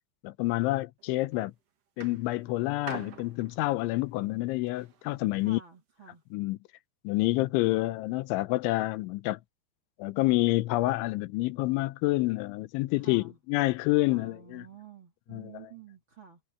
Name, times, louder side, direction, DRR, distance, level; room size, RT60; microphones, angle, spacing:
voice 1, 0.2-1.5 2.0-5.6 6.3-6.6 7.0-9.4 10.0-14.6 15.3-15.5, left 19 dB, 90° left, 3.2 m, -28 dB
sound 1, 1.0-1.4 2.0-5.2 6.0-6.1, right 7 dB, 60° right, 1.7 m, -46 dB
voice 2, 5.4-6.2 7.3-7.9 13.0-13.4 14.1-16.4, right 8 dB, 30° right, 2.7 m, -51 dB
omnidirectional pair, 5.3 m